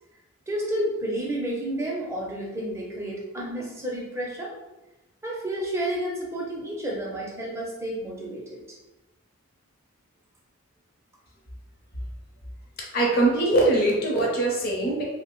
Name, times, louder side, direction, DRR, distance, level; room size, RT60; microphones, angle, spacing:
voice 1, 0.5-4.5 5.2-8.6, right 1 dB, 15° right, -3 dB, 0.5 m, -30 dB
voice 2, 12.9-15.0, right 2 dB, 45° left, -2 dB, 0.6 m, -22 dB
2.9 x 2.1 x 3.0 m, 1.0 s
head